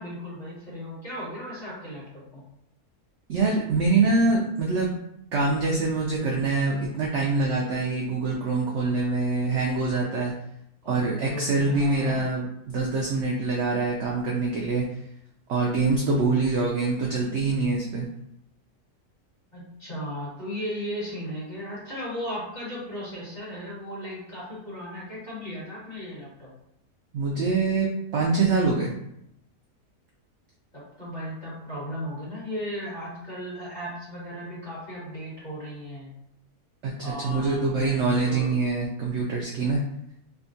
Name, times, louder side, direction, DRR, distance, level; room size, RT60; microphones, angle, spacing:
voice 1, 0.0-2.4 10.8-12.2 19.5-26.5 30.7-36.1 37.0-38.5, equal, 30° left, -9 dB, 1.6 m, -36 dB
voice 2, 3.3-5.0 5.3-10.3 10.9-14.9 15.5-18.1 27.1-28.9 36.8-39.8, right 3 dB, 70° right, -2 dB, 0.7 m, -25 dB
3.4 x 2.3 x 2.6 m, 0.77 s
omnidirectional pair, 1.6 m